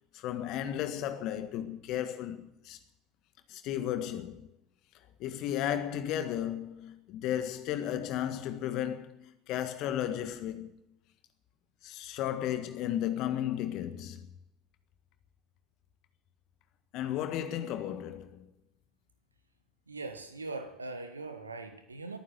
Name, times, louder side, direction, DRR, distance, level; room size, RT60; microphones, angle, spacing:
voice 1, 0.1-2.8 3.5-4.5 5.2-10.7 11.8-14.3 16.9-18.5, left 11 dB, 50° left, 1.6 m, -34 dB
voice 2, 19.9-22.2, right 3 dB, 85° right, 1.5 m, -41 dB
21.0 x 9.6 x 6.7 m
figure-of-eight pair, 65°, 0 cm